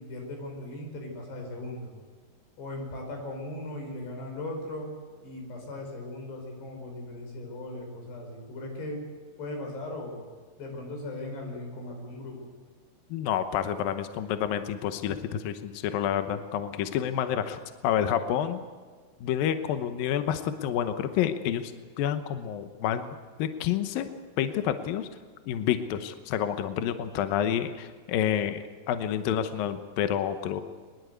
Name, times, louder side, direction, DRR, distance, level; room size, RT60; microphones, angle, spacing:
voice 1, 0.0-1.9 2.6-4.9 5.2-9.0 9.4-10.2 10.6-12.5, left 1 dB, 90° left, 2 dB, 7.2 m, -38 dB
voice 2, 13.1-18.6 19.2-21.7 22.0-24.1 24.4-25.1 25.5-28.6 28.9-30.6, left 9 dB, 70° left, 9 dB, 2.5 m, -29 dB
23.0 x 21.0 x 8.2 m, 1.5 s
omnidirectional pair, 4.7 m